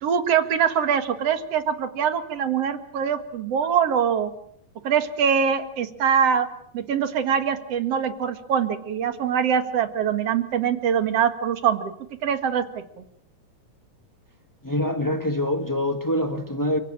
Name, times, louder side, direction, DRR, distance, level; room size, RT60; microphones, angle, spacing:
voice 1, 0.0-4.3 4.8-6.5 6.7-11.9 12.2-13.0, right 7 dB, 55° right, 2.6 m, -23 dB
voice 2, 14.6-16.8, left 1 dB, 25° left, 0.4 m, -25 dB
29.5 x 17.0 x 8.8 m
omnidirectional pair, 3.6 m